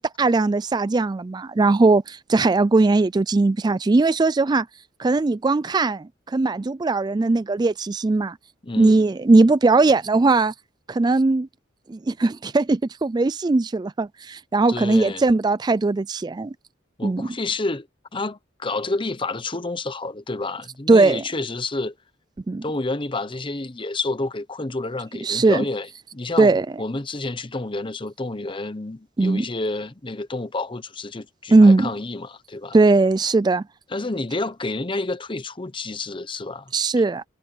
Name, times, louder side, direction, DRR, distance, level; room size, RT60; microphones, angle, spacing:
voice 1, 0.0-4.7 5.0-8.4 8.8-10.5 10.9-11.5 11.9-16.5 17.0-17.3 20.9-21.2 22.5-22.6 25.2-25.6 26.4-26.7 29.2-29.4 31.5-31.9 32.7-33.6 36.7-37.2, right 3 dB, 20° right, 0.3 m, -19 dB
voice 2, 8.6-9.0 14.7-15.2 17.0-17.9 18.1-21.9 22.6-26.5 26.8-32.8 33.9-36.7, left 2 dB, 25° left, 0.9 m, -29 dB
head